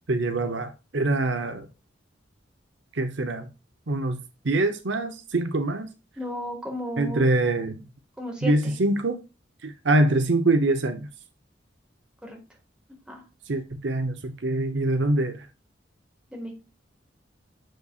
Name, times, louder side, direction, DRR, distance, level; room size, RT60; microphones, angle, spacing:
voice 1, 0.1-1.7 2.9-3.5 3.9-4.2 4.4-5.9 7.0-7.8 8.4-9.2 9.6-11.1 13.5-15.5, right 2 dB, 70° right, 0.9 m, -24 dB
voice 2, 6.2-7.3 8.2-8.8 12.2-12.4 13.1-13.2 16.3-16.5, equal, 5° right, 1.8 m, -34 dB
7.6 x 6.9 x 2.4 m
head